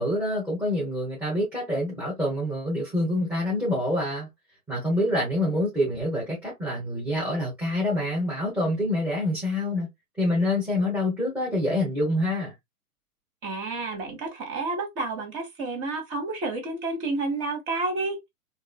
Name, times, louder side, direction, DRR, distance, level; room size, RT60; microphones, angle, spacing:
voice 1, 0.0-4.3 4.7-9.9 10.2-12.5, left 1 dB, 5° right, 1.2 m, -26 dB
voice 2, 13.4-18.2, right 3 dB, 30° right, 1.5 m, -30 dB
3.8 x 2.8 x 2.3 m
figure-of-eight pair, 120°, 46 cm